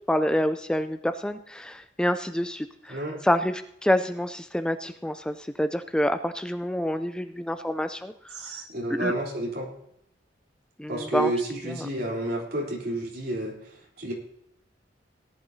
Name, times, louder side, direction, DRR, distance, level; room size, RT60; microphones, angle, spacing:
voice 1, 0.1-3.0 3.2-8.5 8.9-9.1 10.8-11.3 11.8-11.9, left 1 dB, 5° left, 9 dB, 0.3 m, -27 dB
voice 2, 2.9-3.2 8.3-9.7 10.9-14.1, right 1 dB, 60° right, -2 dB, 3.5 m, -31 dB
18.0 x 11.0 x 2.7 m, 0.77 s
head